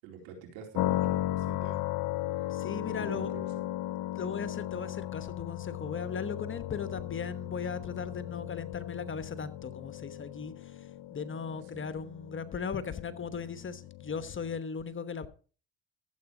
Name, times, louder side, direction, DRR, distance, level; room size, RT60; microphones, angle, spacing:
voice 1, 0.0-1.8 2.4-2.5 2.9-3.4 11.7-11.8, right 6 dB, 80° right, 4.1 m, -46 dB
sound 1, 0.7-14.6, left 15 dB, 60° left, 0.8 m, -36 dB
voice 2, 2.5-3.3 4.1-15.3, left 6 dB, 30° left, 1.2 m, -37 dB
13.5 x 8.1 x 4.9 m
supercardioid pair, 80°, 39 cm